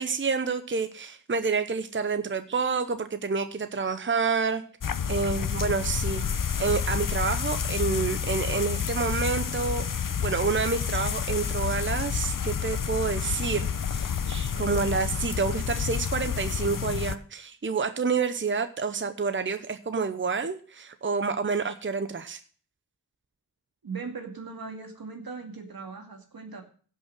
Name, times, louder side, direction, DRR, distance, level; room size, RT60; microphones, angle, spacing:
voice 1, 0.0-4.6 5.1-6.3 6.6-9.8 10.2-22.4, right 5 dB, 35° right, 9 dB, 0.9 m, -28 dB
sound 1, 4.8-17.1, left 7 dB, 65° left, 0.8 m, -29 dB
voice 2, 23.8-26.6, right 4 dB, 80° right, 4 dB, 2.3 m, -39 dB
16.5 x 5.6 x 6.1 m, 0.43 s
wide cardioid pair, 70°, 35 cm